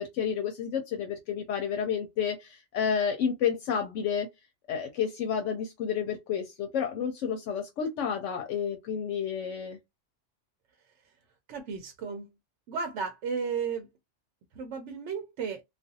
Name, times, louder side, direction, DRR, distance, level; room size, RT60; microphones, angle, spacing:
voice 1, 0.0-4.3 4.7-9.8, left 7 dB, 80° left, 0.9 m, -30 dB
voice 2, 11.5-12.3 12.7-13.9 14.6-15.6, right 6 dB, 75° right, 0.9 m, -34 dB
2.4 x 2.3 x 2.6 m
omnidirectional pair, 1.2 m